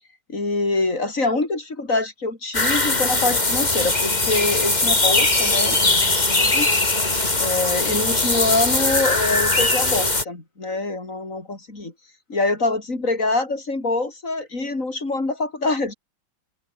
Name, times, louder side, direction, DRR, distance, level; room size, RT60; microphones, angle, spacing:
voice 1, 0.3-6.7 7.4-11.9 12.3-15.9, left 2 dB, 40° left, 5.4 m, -25 dB
sound 1, 2.5-10.2, left 2 dB, 20° left, 2.7 m, -20 dB
open air
omnidirectional pair, 2.2 m